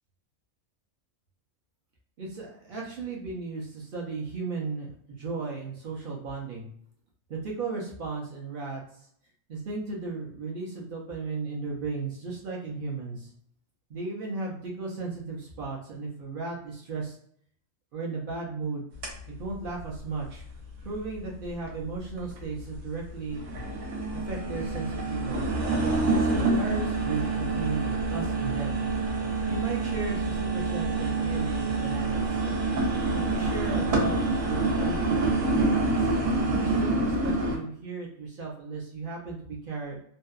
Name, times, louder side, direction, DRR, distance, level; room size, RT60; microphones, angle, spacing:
voice 1, 2.2-6.7 7.3-9.1 9.5-13.3 13.9-17.1 17.9-18.9 19.4-20.4 20.8-23.4 24.1-25.4 26.1-28.8 29.5-32.4 33.1-36.1 36.6-40.0, right 3 dB, 55° right, -2 dB, 0.7 m, -35 dB
sound 1, 19.0-19.1 19.6-19.7 20.4-20.5 21.7-21.8 22.2-22.8 23.1-37.6, right 3 dB, 75° right, 1.0 m, -27 dB
2.7 x 2.2 x 2.3 m, 0.64 s
omnidirectional pair, 1.3 m